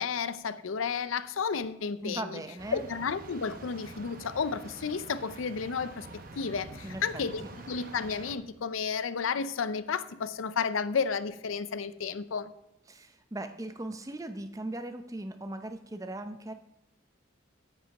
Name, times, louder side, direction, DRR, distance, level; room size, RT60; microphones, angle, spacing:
voice 1, 0.0-2.4 2.7-6.1 6.4-12.5, left 6 dB, 80° left, 0.5 m, -32 dB
voice 2, 2.0-2.9 6.8-7.3 12.9-16.5, right 1 dB, 15° right, 0.6 m, -39 dB
sound 1, 2.6-8.4, right 2 dB, 45° right, 0.9 m, -47 dB
8.1 x 7.9 x 5.9 m
head